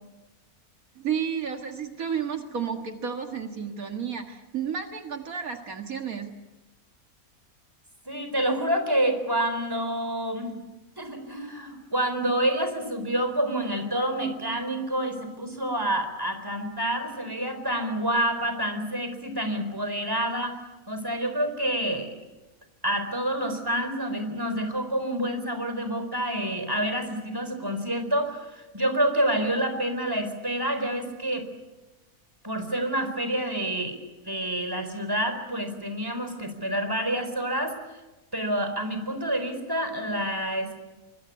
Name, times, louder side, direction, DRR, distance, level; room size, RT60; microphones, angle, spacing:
voice 1, 1.0-6.3, right 7 dB, 75° right, 5 dB, 2.2 m, -32 dB
voice 2, 8.1-10.6 11.0-20.6 20.9-22.1 22.8-31.4 32.4-34.0 34.3-37.8 38.3-40.8, right 1 dB, 15° right, 7 dB, 4.2 m, -28 dB
24.5 x 22.5 x 9.6 m, 1.1 s
omnidirectional pair, 1.5 m